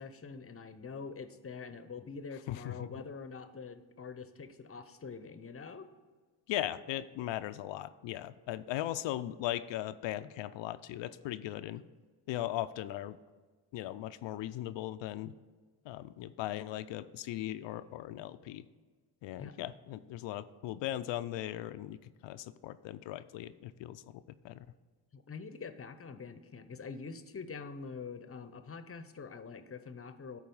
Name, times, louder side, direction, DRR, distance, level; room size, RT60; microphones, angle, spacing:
voice 1, 0.0-5.9 19.4-19.5 25.1-30.4, left 5 dB, 30° left, 11 dB, 0.7 m, -45 dB
voice 2, 2.5-2.9 6.5-11.8 12.3-13.2 13.7-15.3 15.9-18.6 19.2-24.7, left 13 dB, 70° left, 13 dB, 0.5 m, -38 dB
10.5 x 4.2 x 5.4 m, 1.4 s
supercardioid pair, 55°, 47 cm